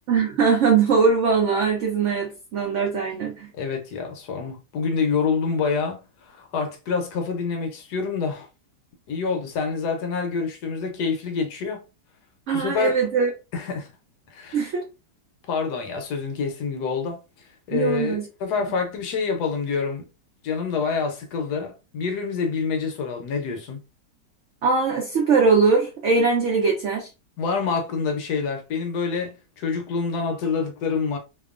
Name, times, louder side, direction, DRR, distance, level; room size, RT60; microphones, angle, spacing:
voice 1, 0.1-3.5 12.5-13.3 14.5-14.8 17.7-18.3 24.6-27.1, right 5 dB, 85° right, 0.6 m, -21 dB
voice 2, 3.6-8.5 9.1-11.8 12.5-12.9 13.5-13.9 14.3-14.6 15.5-17.2 17.7-20.1 20.4-23.8 27.4-31.2, left 5 dB, 70° left, 1.1 m, -27 dB
2.9 x 2.2 x 2.3 m
omnidirectional pair, 1.9 m